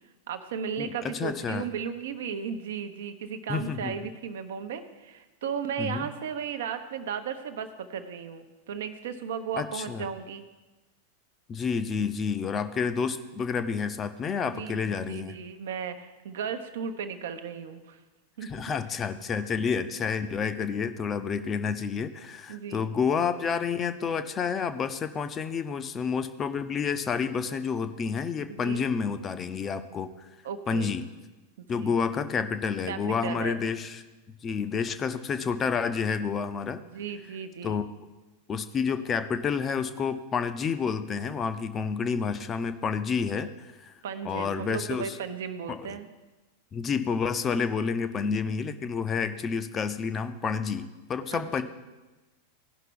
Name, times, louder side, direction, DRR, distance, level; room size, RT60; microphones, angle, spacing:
voice 1, 0.3-10.4 14.4-18.0 18.4-18.5 22.5-22.9 28.5-28.8 30.4-31.0 31.6-32.0 32.9-33.6 36.8-37.8 44.0-46.1 48.4-48.5 51.3-51.6, right 7 dB, 60° right, 9 dB, 0.7 m, -35 dB
voice 2, 0.8-1.7 3.5-3.9 5.8-6.1 9.6-10.1 11.5-15.4 18.4-30.1 30.7-31.1 31.7-34.0 34.4-36.8 37.6-37.9 38.5-43.9 44.2-45.2 45.7-46.0 46.7-51.6, left 6 dB, 25° left, 11 dB, 0.6 m, -29 dB
16.5 x 5.7 x 3.7 m, 1.1 s
figure-of-eight pair, 90°, 0 cm